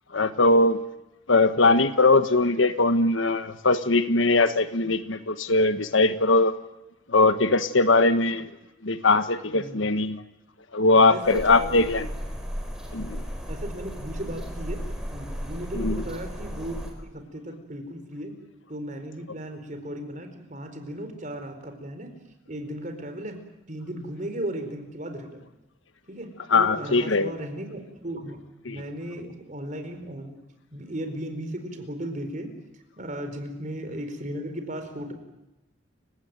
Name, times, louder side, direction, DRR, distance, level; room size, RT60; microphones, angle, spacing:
voice 1, 0.1-0.8 1.3-6.5 7.1-8.5 8.8-10.2 10.7-12.1 12.9-13.2 15.7-16.0 26.5-27.3 28.6-28.8, left 3 dB, 80° left, 10 dB, 1.4 m, -21 dB
voice 2, 11.1-11.7 13.5-14.8 15.1-16.8 17.1-18.3 18.7-22.1 22.5-23.4 23.7-25.4 26.1-30.4 30.7-32.5 33.0-35.1, right 1 dB, 40° right, 7 dB, 4.5 m, -36 dB
sound 1, 11.2-16.9, equal, 5° right, 4.8 m, -35 dB
29.5 x 17.0 x 9.2 m, 0.96 s
head